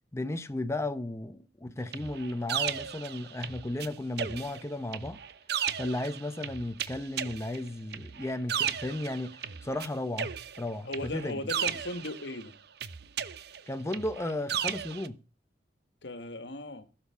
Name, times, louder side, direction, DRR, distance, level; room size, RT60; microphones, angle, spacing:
voice 1, 0.1-5.2 5.8-11.4 13.7-15.2, left 1 dB, 15° left, 0.7 m, -34 dB
sound 1, 1.9-3.9 4.2-9.9 10.2-12.4 12.8-15.1, right 9 dB, 65° right, 0.8 m, -35 dB
voice 2, 10.8-12.6 16.0-16.9, left 2 dB, 80° left, 1.7 m, -37 dB
16.5 x 7.3 x 5.8 m
head